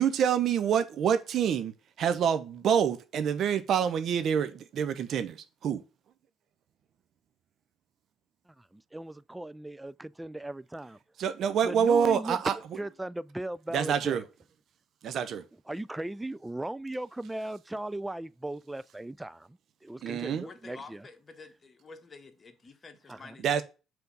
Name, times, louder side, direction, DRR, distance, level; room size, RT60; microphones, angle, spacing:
voice 1, 0.0-5.8 11.2-12.5 13.7-14.2 15.0-15.4 20.0-20.4 23.4-23.6, right 8 dB, 60° right, 0.7 m, -27 dB
voice 2, 8.5-11.0 11.6-14.2 15.7-21.1 23.1-23.4, right 1 dB, 10° right, 0.4 m, -38 dB
voice 3, 20.4-23.6, left 4 dB, 35° left, 1.3 m, -49 dB
5.7 x 3.6 x 5.3 m
hypercardioid pair, 50°, 0 cm